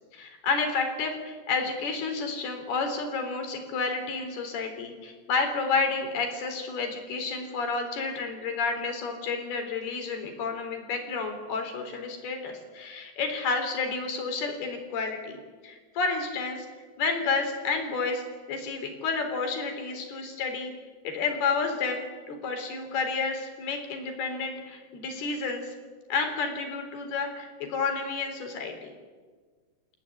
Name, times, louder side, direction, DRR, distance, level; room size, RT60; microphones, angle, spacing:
voice 1, 0.1-16.7 17.0-18.2 18.5-20.7 21.0-25.7 26.1-28.9, left 4 dB, 80° left, 5 dB, 5.7 m, -30 dB
30.0 x 16.0 x 9.8 m, 1.5 s
omnidirectional pair, 4.4 m